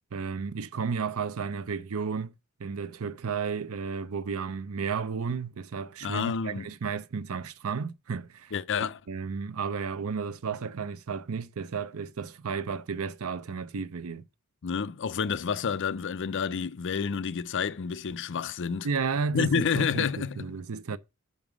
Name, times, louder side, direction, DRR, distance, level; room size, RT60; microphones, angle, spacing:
voice 1, 0.1-2.3 2.6-8.5 9.1-14.2 18.8-21.0, right 5 dB, 70° right, 0.6 m, -33 dB
voice 2, 6.0-6.7 8.5-9.0 14.6-18.9 19.3-20.5, left 6 dB, 55° left, 0.5 m, -29 dB
5.8 x 5.4 x 6.1 m
head